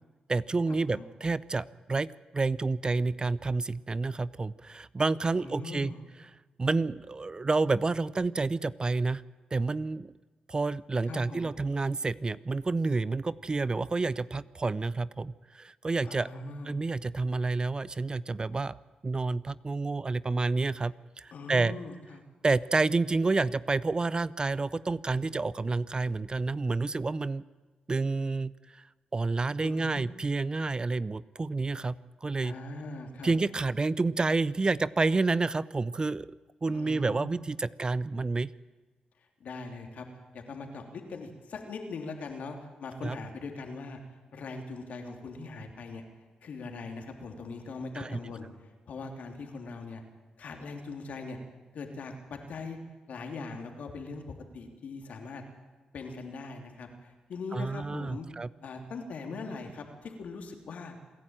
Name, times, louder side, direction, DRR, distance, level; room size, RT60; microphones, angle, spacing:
voice 1, 0.3-2.1 2.3-5.9 6.6-9.2 9.5-10.1 10.5-16.3 16.6-18.8 19.0-21.7 22.4-27.4 27.9-28.8 29.1-32.5 33.2-36.3 36.6-38.5 43.0-43.2 47.9-48.2 57.5-58.5, right 3 dB, 30° right, 19 dB, 0.6 m, -29 dB
voice 2, 5.3-6.0 11.0-11.6 16.0-16.8 21.3-22.2 29.6-30.0 32.4-33.3 36.7-37.4 39.4-40.0 40.3-44.0 44.3-46.0 46.4-48.5 48.9-50.0 50.4-51.4 51.7-52.8 53.1-54.2 54.5-55.4 55.9-58.3 58.6-60.9, left 3 dB, 70° left, 4 dB, 3.3 m, -41 dB
27.5 x 11.0 x 9.0 m, 1.3 s
supercardioid pair, 55°, 3 cm